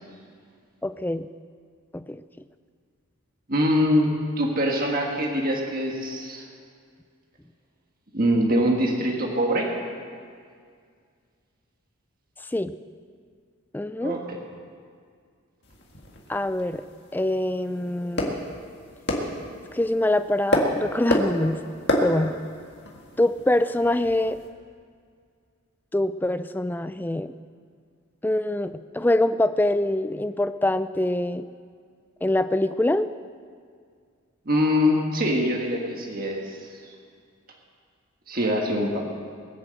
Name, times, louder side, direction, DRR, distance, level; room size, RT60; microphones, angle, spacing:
voice 1, 0.8-1.3 1.9-2.2 12.5-12.7 13.7-14.2 16.3-16.8 17.1-18.4 19.7-21.6 22.0-22.4 23.2-24.4 25.9-27.3 28.2-31.5 32.2-33.1, left 1 dB, 10° left, 11 dB, 0.3 m, -24 dB
voice 2, 3.5-4.1 4.4-6.5 8.1-9.7 14.0-14.4 34.4-36.7 38.3-39.1, equal, 40° right, 0 dB, 1.6 m, -23 dB
sound 1, 15.6-24.5, left 1 dB, 50° left, 1.9 m, -30 dB
20.5 x 7.4 x 7.7 m, 2.1 s
head